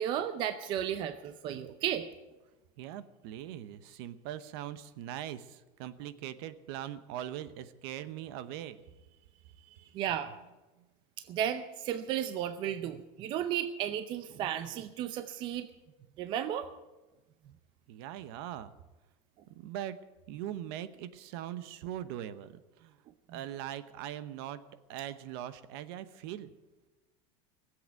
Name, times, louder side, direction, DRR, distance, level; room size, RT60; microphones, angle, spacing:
voice 1, 0.0-2.1 9.9-10.3 11.2-15.7 16.2-16.7 23.3-23.4, right 10 dB, 35° right, 10 dB, 0.6 m, -34 dB
voice 2, 2.8-8.8 9.6-9.9 17.9-18.7 19.5-20.0 20.3-23.0 23.3-24.6 24.9-26.5, right 11 dB, 60° right, 13 dB, 0.9 m, -41 dB
17.5 x 7.9 x 9.3 m, 1.1 s
cardioid pair, 170°, 14 cm